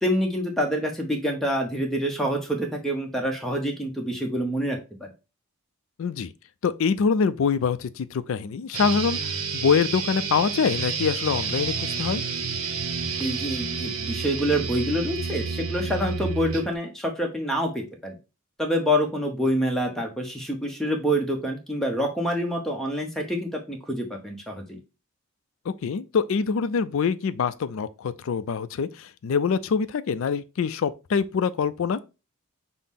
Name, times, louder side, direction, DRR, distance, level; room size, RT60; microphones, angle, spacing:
voice 1, 0.0-5.1 13.2-18.2 18.6-24.8, equal, ahead, 0.7 m, -27 dB
voice 2, 6.0-6.3 6.6-12.2 25.7-32.0, left 6 dB, 65° left, 0.3 m, -25 dB
sound 1, 8.7-16.7, right 5 dB, 70° right, 0.7 m, -30 dB
5.7 x 2.0 x 3.5 m
head